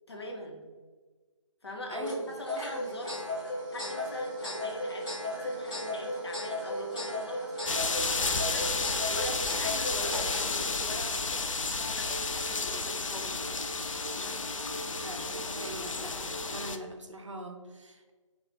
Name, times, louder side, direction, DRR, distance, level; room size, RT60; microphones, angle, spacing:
voice 1, 0.1-0.6 1.6-2.1 2.4-3.2 3.7-13.4 14.1-14.4, left 1 dB, 50° left, 0 dB, 0.8 m, -42 dB
sound 1, 2.0-16.8, left 1 dB, 10° left, 0.7 m, -37 dB
sound 2, 7.7-16.8, left 4 dB, 70° left, 0.4 m, -32 dB
voice 2, 14.7-16.2 16.5-18.1, right 1 dB, 65° right, 3 dB, 0.7 m, -42 dB
3.9 x 2.4 x 3.3 m, 1.4 s
figure-of-eight pair, 155°, 17 cm